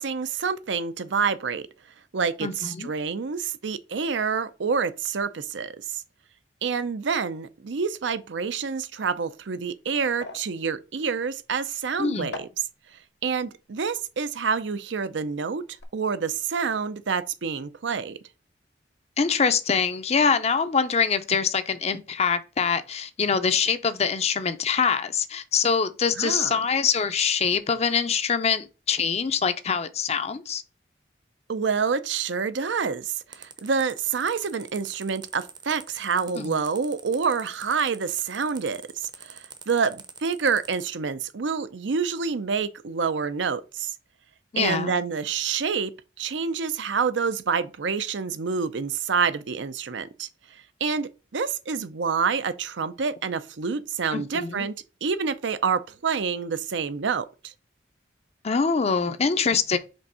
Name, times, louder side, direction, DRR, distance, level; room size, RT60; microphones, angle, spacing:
voice 1, 0.0-1.7 2.1-6.0 6.6-12.5 13.2-15.6 15.9-18.2 26.2-26.6 31.5-38.8 39.2-43.9 44.6-45.9 46.2-50.3 50.8-54.7 55.0-57.5, right 5 dB, 75° right, 0.6 m, -27 dB
voice 2, 2.4-2.9 12.0-12.3 19.2-30.6 36.4-36.6 44.5-45.0 54.1-54.7 58.4-59.8, left 6 dB, 35° left, 0.5 m, -24 dB
sound 1, 10.0-15.3 15.6-15.8, left 3 dB, 65° left, 1.2 m, -46 dB
sound 2, 33.3-40.9, right 6 dB, 25° right, 0.6 m, -44 dB
5.3 x 3.5 x 5.4 m
head